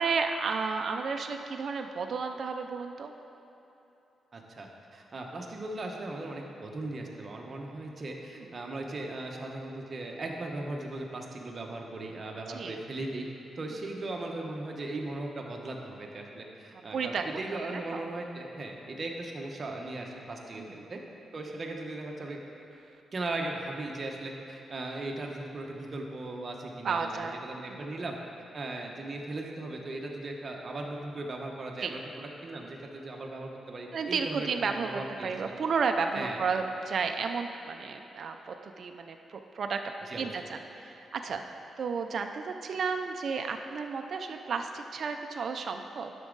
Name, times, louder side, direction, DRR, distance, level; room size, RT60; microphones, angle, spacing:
voice 1, 0.0-3.1 8.4-8.5 12.5-12.8 16.9-17.2 17.9-18.0 20.5-20.9 26.8-28.0 31.8-31.9 33.9-39.8 40.2-41.4 41.8-46.1, right 5 dB, 55° right, 5 dB, 0.4 m, -32 dB
voice 2, 4.3-13.3 13.6-20.6 20.9-21.0 21.3-22.4 23.1-27.1 27.4-28.2 28.5-35.3 36.1-36.4 40.1-40.3, right 2 dB, 40° right, 0 dB, 1.0 m, -38 dB
11.0 x 6.1 x 3.9 m, 3.0 s
cardioid pair, 110°, 0 cm